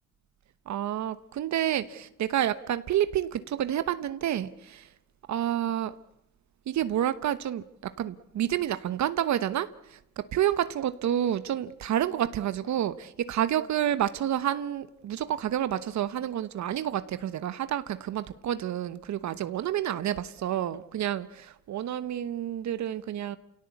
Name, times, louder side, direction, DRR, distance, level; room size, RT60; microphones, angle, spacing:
voice 1, 0.7-4.9 5.3-5.9 6.7-23.4, right 11 dB, 70° right, 13 dB, 1.1 m, -29 dB
29.5 x 17.5 x 8.4 m, 0.85 s
cardioid pair, 90°, 30 cm